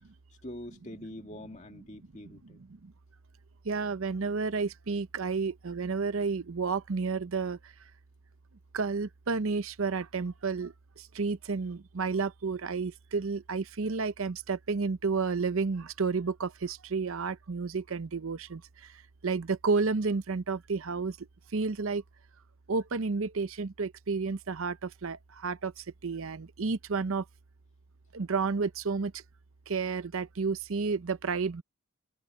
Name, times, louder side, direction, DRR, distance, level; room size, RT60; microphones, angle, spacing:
voice 1, 0.4-2.6, left 1 dB, 30° left, 2.5 m, -44 dB
voice 2, 3.6-7.7 8.7-21.3 21.5-22.0 22.7-27.2 28.1-29.2 29.7-31.6, right 4 dB, 70° right, 0.7 m, -31 dB
head